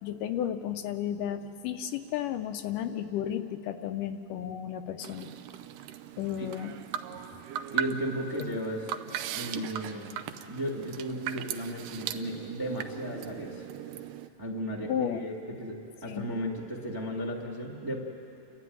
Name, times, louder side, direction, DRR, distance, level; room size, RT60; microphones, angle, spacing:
voice 1, 0.0-5.3 6.2-6.7 14.9-15.2 16.0-16.3, left 10 dB, 80° left, 8 dB, 2.1 m, -33 dB
sound 1, 5.0-14.3, right 10 dB, 80° right, 2.2 m, -38 dB
voice 2, 7.7-8.9 9.3-10.1 10.5-13.7 14.4-18.0, equal, 15° right, 0 dB, 0.8 m, -35 dB
29.5 x 13.0 x 9.4 m, 2.9 s
omnidirectional pair, 4.0 m